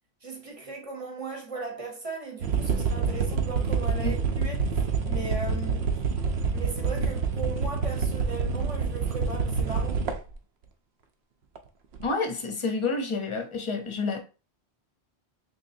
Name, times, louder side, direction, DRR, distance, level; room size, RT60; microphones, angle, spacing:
voice 1, 0.2-4.7 5.0-6.0 6.5-10.1, right 3 dB, 35° right, 0.8 m, -37 dB
sound 1, 2.4-10.3 11.6-11.7 11.9-12.1, right 5 dB, 75° right, 0.8 m, -27 dB
voice 2, 12.0-14.2, left 4 dB, 35° left, 0.5 m, -29 dB
3.7 x 3.0 x 2.6 m
omnidirectional pair, 1.1 m